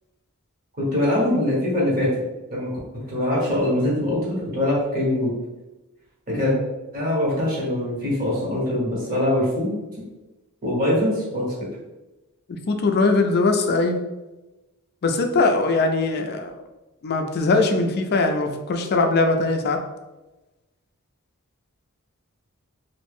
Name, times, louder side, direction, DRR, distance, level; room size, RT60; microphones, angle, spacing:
voice 1, 0.8-2.1 2.5-2.7 3.1-5.3 6.3-6.5 6.9-9.7 10.6-11.7, left 1 dB, 40° right, -5 dB, 1.4 m, -23 dB
voice 2, 6.3-6.6 12.7-14.0 15.0-16.5 17.0-19.8, left 3 dB, 45° left, 5 dB, 0.4 m, -21 dB
3.0 x 2.5 x 3.5 m, 1.1 s
head